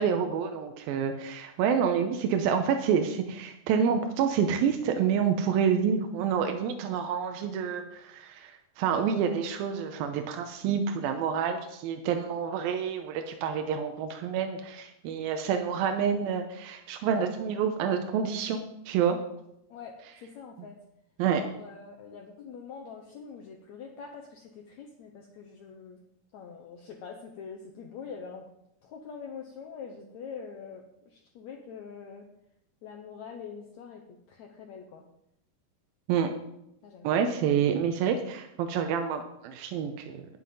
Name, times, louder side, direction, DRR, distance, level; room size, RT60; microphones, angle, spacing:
voice 1, 0.0-19.2 21.2-21.4 36.1-36.3 37.0-40.3, right 7 dB, 85° right, 5 dB, 2.6 m, -28 dB
voice 2, 19.7-20.8 21.4-26.0 26.3-28.5 28.8-32.3 32.8-35.0 36.8-37.1, left 6 dB, 70° left, 1 dB, 1.8 m, -44 dB
9.9 x 7.6 x 5.3 m, 0.80 s
omnidirectional pair, 4.2 m